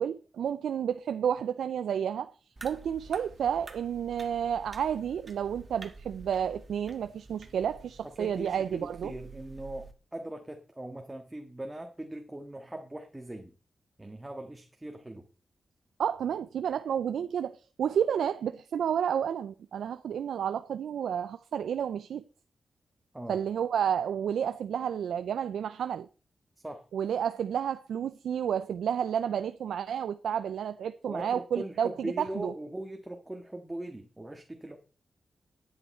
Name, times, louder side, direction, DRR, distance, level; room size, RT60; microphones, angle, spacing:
voice 1, 0.0-2.3 2.6-9.1 16.0-22.2 23.3-26.1 26.9-32.5, right 8 dB, 90° right, 0.4 m, -31 dB
sound 1, 2.6-9.9, right 3 dB, 40° right, 1.6 m, -49 dB
voice 2, 8.2-13.5 14.0-15.3 23.1-23.4 26.6-26.8 31.1-34.8, right 1 dB, 15° right, 1.6 m, -40 dB
10.5 x 8.7 x 4.4 m
cardioid pair, 60°, 0 cm